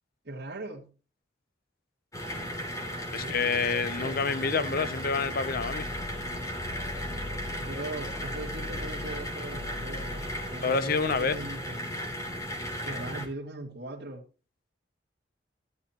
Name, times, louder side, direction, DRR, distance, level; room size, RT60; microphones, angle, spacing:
voice 1, 0.2-0.9 3.2-4.9 7.6-10.2 10.5-11.9 12.8-14.2, right 2 dB, 60° right, 2.3 m, -40 dB
sound 1, 2.1-13.3, equal, 20° left, 3.1 m, -36 dB
sound 2, 2.2-11.0, right 2 dB, 35° right, 2.7 m, -49 dB
voice 2, 3.1-5.9 10.6-11.4, left 4 dB, 55° left, 0.7 m, -28 dB
sound 3, 5.5-11.5, left 2 dB, 85° left, 1.8 m, -42 dB
14.0 x 11.5 x 2.9 m
head